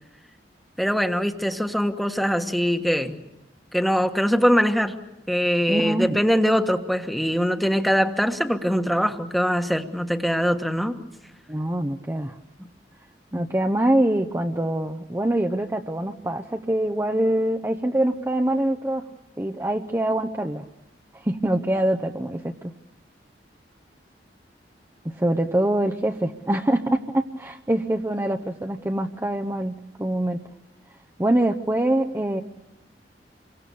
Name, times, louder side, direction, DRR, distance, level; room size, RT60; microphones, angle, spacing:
voice 1, 0.8-3.2 3.7-4.9 5.3-11.0, equal, ahead, 6 dB, 1.4 m, -22 dB
voice 2, 5.7-6.2 11.5-12.4 13.3-19.0 19.4-20.6 21.1-22.7 25.0-30.4 31.2-32.4, right 1 dB, 15° right, 3 dB, 0.8 m, -24 dB
28.0 x 23.5 x 7.0 m, 0.93 s
head